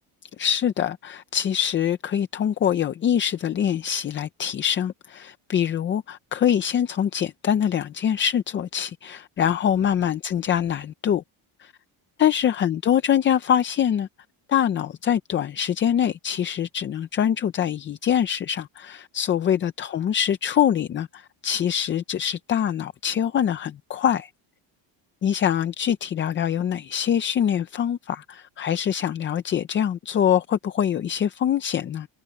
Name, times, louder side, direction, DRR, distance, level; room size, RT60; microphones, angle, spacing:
voice 1, 0.4-11.2 11.6-11.7 12.2-14.1 14.5-24.3 25.2-32.1, left 9 dB, 25° left, 0.4 m, -24 dB
cardioid pair, 175°, 49 cm